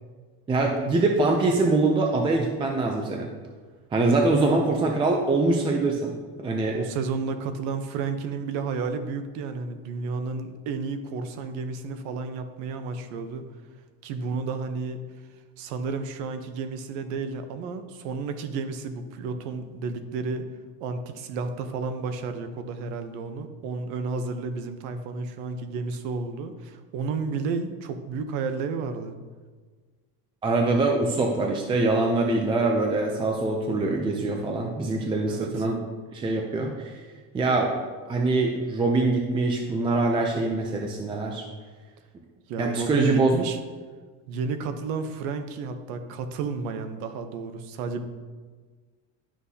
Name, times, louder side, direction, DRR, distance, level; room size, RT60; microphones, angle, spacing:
voice 1, 0.5-3.3 3.9-6.1 6.4-6.8 30.4-35.8 36.1-36.9 37.3-37.7 38.1-41.4 42.6-43.4, right 3 dB, 15° right, 2 dB, 0.4 m, -23 dB
voice 2, 6.7-13.5 14.0-15.0 15.6-20.5 20.8-29.1 35.3-35.7 42.5-43.6 44.3-48.0, right 4 dB, 85° right, 8 dB, 0.9 m, -32 dB
11.5 x 6.1 x 2.8 m, 1.4 s
cardioid pair, 165°, 37 cm